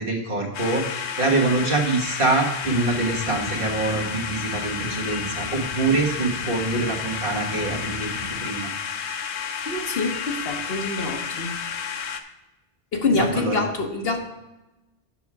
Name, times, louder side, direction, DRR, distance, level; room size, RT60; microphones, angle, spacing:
voice 1, 0.0-8.1 8.4-8.7 13.2-13.6, right 3 dB, 55° right, -1 dB, 1.6 m, -25 dB
sound 1, 0.5-12.2, left 7 dB, 85° left, 1.0 m, -31 dB
sound 2, 2.6-8.4, left 1 dB, 50° left, 2.7 m, -37 dB
voice 2, 9.6-11.6 12.9-14.2, left 3 dB, 65° left, 3 dB, 1.3 m, -26 dB
7.3 x 6.2 x 4.7 m, 1.0 s
omnidirectional pair, 1.1 m